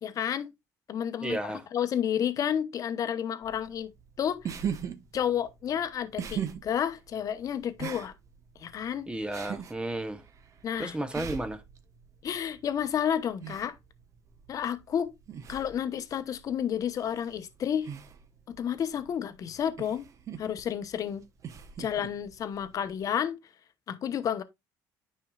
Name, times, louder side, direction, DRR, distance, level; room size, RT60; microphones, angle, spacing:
voice 1, 0.0-0.5 0.9-3.9 4.2-4.5 5.1-8.1 8.6-9.1 10.6-11.0 12.2-13.8 14.5-15.1 15.5-17.9 18.5-20.0 20.4-21.2 21.8-23.4 23.9-24.4, left 9 dB, 45° left, 0.9 m, -31 dB
voice 2, 1.2-1.6 9.1-10.2 10.8-11.6, right 1 dB, 10° right, 0.9 m, -33 dB
sound 1, 3.4-23.1, right 8 dB, 45° right, 1.0 m, -42 dB
9.8 x 5.4 x 2.3 m
cardioid pair, 110°, 8 cm